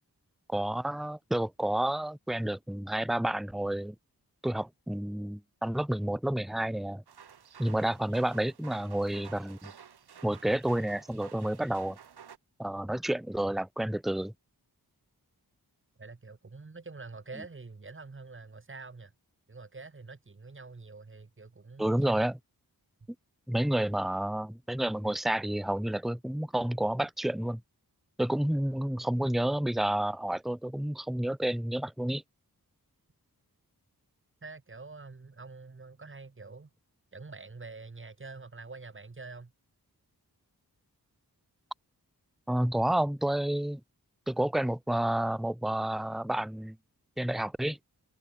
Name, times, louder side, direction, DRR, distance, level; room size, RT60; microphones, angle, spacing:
voice 1, 0.5-3.9 4.4-7.0 7.6-9.7 10.2-12.0 12.6-14.3 21.8-22.3 23.5-27.6 28.2-32.2 42.5-43.8 44.3-46.8 47.2-47.8, right 1 dB, ahead, 0.8 m, -30 dB
sound 1, 7.1-12.4, right 7 dB, 80° right, 1.1 m, -52 dB
voice 2, 16.0-19.1 19.5-22.2 34.4-36.7 37.1-39.5, right 3 dB, 30° right, 1.3 m, -46 dB
cardioid pair, 45°, 38 cm